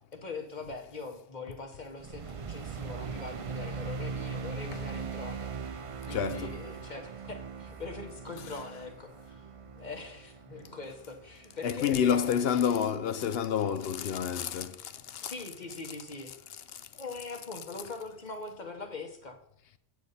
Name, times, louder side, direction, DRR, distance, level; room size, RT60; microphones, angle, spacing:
voice 1, 0.1-5.7 6.0-9.5 9.7-12.4 15.2-16.3 16.9-19.4, left 3 dB, 40° left, 1.4 m, -42 dB
sound 1, 2.0-12.5, right 5 dB, 55° right, 0.3 m, -40 dB
voice 2, 6.1-6.6 8.4-8.6 11.6-15.3 16.3-16.8, left 8 dB, 60° left, 0.8 m, -29 dB
9.4 x 6.7 x 4.1 m
omnidirectional pair, 1.2 m